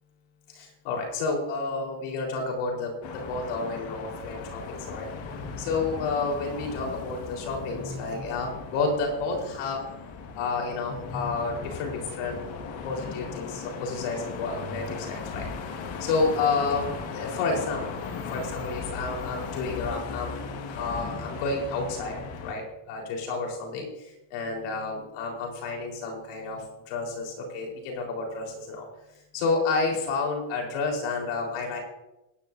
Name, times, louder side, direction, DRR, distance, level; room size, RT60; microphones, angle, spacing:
voice 1, 0.9-5.1 5.6-9.9 10.3-12.5 12.8-15.5 16.0-18.0 18.3-20.4 20.7-28.9 29.3-31.8, left 3 dB, 80° left, 0 dB, 4.1 m, -30 dB
sound 1, 3.0-22.5, left 5 dB, 60° left, 1.8 m, -37 dB
18.5 x 9.9 x 2.6 m, 0.96 s
cardioid pair, 105°, 50 cm